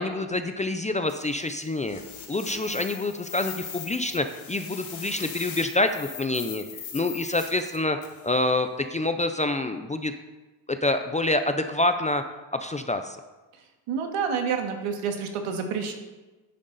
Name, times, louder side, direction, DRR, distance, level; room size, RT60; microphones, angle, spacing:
voice 1, 0.0-2.0 2.3-6.6 6.9-8.0 8.2-10.1 10.7-12.2 12.5-13.2, left 2 dB, 15° left, 8 dB, 0.4 m, -27 dB
sound 1, 1.1-8.3, left 7 dB, 65° left, 2.4 m, -40 dB
voice 2, 13.9-15.9, right 6 dB, 85° right, 4 dB, 1.8 m, -28 dB
11.5 x 10.0 x 4.0 m, 1.2 s
cardioid pair, 140°, 50 cm